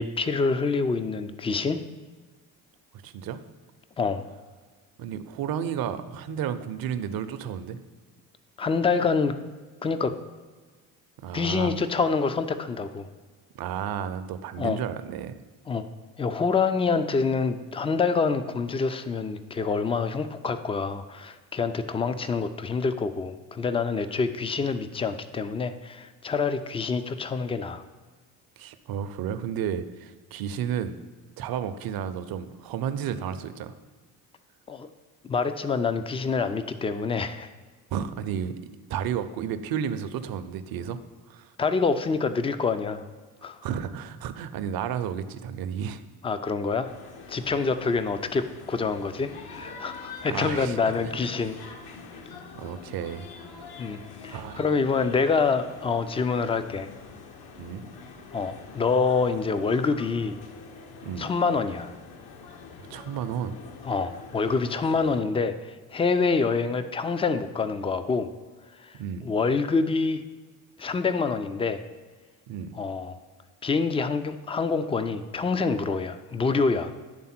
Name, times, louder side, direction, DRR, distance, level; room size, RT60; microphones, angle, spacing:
voice 1, 0.0-1.8 4.0-4.2 8.6-9.4 9.8-10.1 11.3-13.1 14.6-14.8 15.7-15.9 16.2-27.8 34.7-34.9 35.2-37.5 41.6-43.0 43.4-43.6 46.2-46.9 47.3-51.6 53.8-56.9 58.3-60.4 61.2-61.9 63.8-68.3 68.8-68.9 69.2-70.2 70.8-71.8 72.8-73.2 73.6-76.9, left 4 dB, 15° left, 11 dB, 0.3 m, -26 dB
voice 2, 3.0-3.4 5.0-7.8 11.2-11.7 13.5-15.4 28.6-31.0 31.4-33.7 37.9-38.5 38.9-41.0 41.3-41.5 43.6-46.0 50.3-50.8 51.0-51.2 52.6-53.3 54.3-54.8 57.6-57.8 61.0-61.3 62.9-63.6 68.9-69.3 72.5-72.7, right 8 dB, 55° right, 11 dB, 0.6 m, -32 dB
sound 1, 46.8-65.2, left 5 dB, 60° left, 0.9 m, -45 dB
9.6 x 3.5 x 4.3 m, 1.4 s
hypercardioid pair, 65°, 44 cm